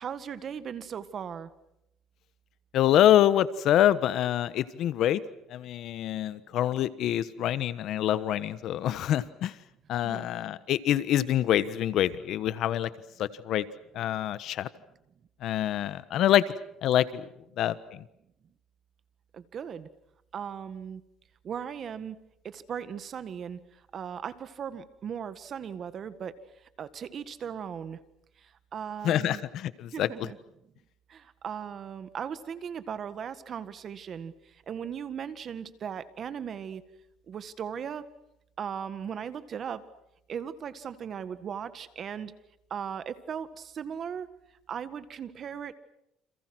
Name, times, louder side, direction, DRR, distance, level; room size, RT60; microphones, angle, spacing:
voice 1, 0.0-1.5 10.0-10.3 19.3-19.9 20.3-21.0 21.4-22.2 22.4-23.6 23.9-26.3 26.8-28.0 28.4-29.4 29.9-30.4 31.1-36.8 37.3-38.0 38.6-39.8 40.3-42.3 42.7-44.3 44.7-45.7, right 8 dB, 45° right, 13 dB, 1.7 m, -37 dB
voice 2, 2.7-5.2 5.5-9.5 9.9-12.9 13.2-13.6 13.9-14.7 15.4-16.4 16.8-17.3 17.6-17.8 29.0-30.1, left 12 dB, 60° left, 15 dB, 1.2 m, -25 dB
29.5 x 27.5 x 6.2 m, 0.81 s
cardioid pair, 120°, 0 cm